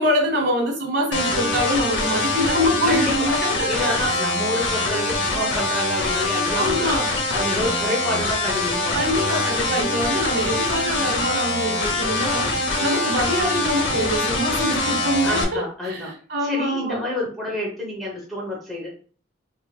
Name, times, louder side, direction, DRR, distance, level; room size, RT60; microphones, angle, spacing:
voice 1, 0.0-4.2 6.5-7.1 8.9-17.0, equal, 60° right, -1 dB, 1.4 m, -24 dB
sound 1, 1.1-15.4, left 2 dB, 75° left, 0.6 m, -24 dB
voice 2, 2.8-3.3 3.7-6.9 7.3-9.5 15.2-16.1 16.4-18.9, left 1 dB, ahead, -5 dB, 0.7 m, -28 dB
3.1 x 2.9 x 2.2 m, 0.42 s
head